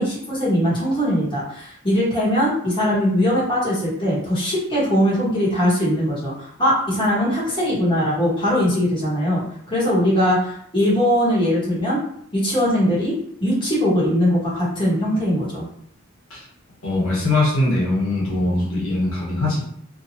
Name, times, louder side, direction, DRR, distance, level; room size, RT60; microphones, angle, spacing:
voice 1, 0.0-12.0 12.3-13.1 13.4-15.6, equal, 25° left, -8 dB, 1.2 m, -20 dB
voice 2, 16.8-19.6, left 2 dB, 80° left, -6 dB, 1.1 m, -21 dB
2.8 x 2.4 x 2.7 m, 0.67 s
head